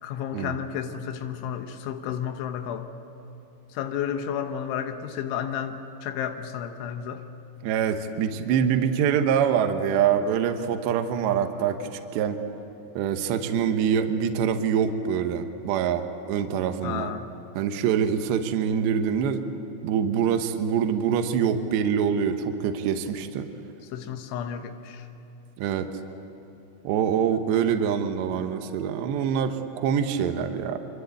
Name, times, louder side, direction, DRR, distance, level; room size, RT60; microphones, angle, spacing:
voice 1, 0.0-2.9 3.7-7.2 16.8-17.3 23.9-25.1, left 8 dB, 85° left, 7 dB, 3.5 m, -32 dB
voice 2, 7.6-12.4 13.0-17.1 17.5-19.4 19.8-23.5 25.6-25.9 26.8-30.8, right 8 dB, 75° right, 7 dB, 3.2 m, -25 dB
26.0 x 25.0 x 8.5 m, 2.9 s
omnidirectional pair, 5.3 m